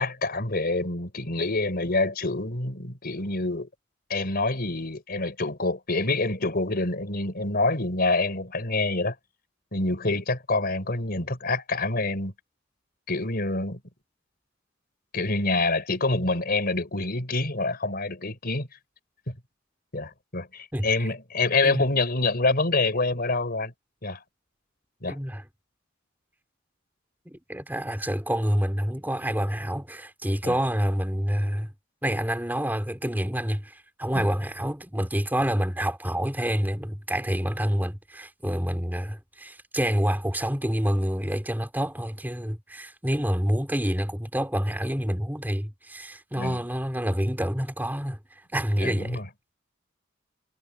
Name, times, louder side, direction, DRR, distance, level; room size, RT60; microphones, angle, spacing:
voice 1, 0.0-3.7 4.1-9.2 9.7-12.3 13.1-13.8 15.1-18.7 19.3-19.4 19.9-23.7 24.0-24.2 25.0-25.2 30.4-30.6 34.1-34.3 46.4-46.6 48.8-49.3, left 2 dB, 50° left, 4.2 m, -26 dB
voice 2, 25.1-25.4 27.3-31.7 32.0-49.2, equal, 10° right, 3.0 m, -27 dB
head